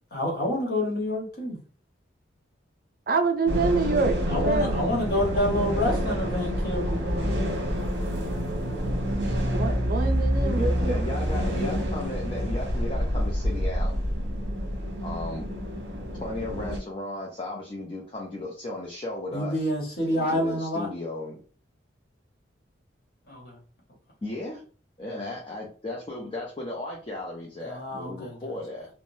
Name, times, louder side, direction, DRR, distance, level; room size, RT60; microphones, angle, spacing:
voice 1, 0.1-1.6 4.3-7.5 19.3-20.9 23.3-23.6 27.6-28.4, left 1 dB, 50° left, -2 dB, 1.1 m, -28 dB
voice 2, 3.1-4.2 4.4-4.9 9.5-11.0, right 4 dB, 50° right, 5 dB, 0.4 m, -26 dB
sound 1, 3.5-16.8, equal, 70° right, 1.0 m, -27 dB
voice 3, 10.4-14.0 15.0-15.5 16.2-19.6 20.1-21.4 24.2-24.6 25.0-28.9, left 2 dB, 30° left, -3 dB, 0.5 m, -35 dB
3.2 x 2.1 x 2.6 m, 0.39 s
head